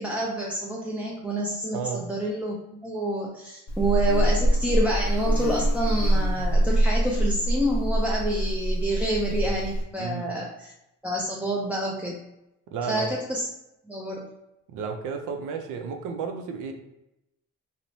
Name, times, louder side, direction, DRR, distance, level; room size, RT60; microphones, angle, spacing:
voice 1, 0.0-10.7 11.0-12.2 12.9-13.5 13.9-14.3, right 1 dB, 5° right, -4 dB, 0.3 m, -28 dB
voice 2, 1.7-2.1 10.0-10.3 12.7-13.1 14.7-16.7, right 6 dB, 90° right, 5 dB, 0.5 m, -32 dB
Buzz, 3.7-9.8, right 1 dB, 60° left, 0.5 m, -24 dB
3.0 x 2.0 x 2.6 m, 0.89 s
cardioid pair, 90°, 30 cm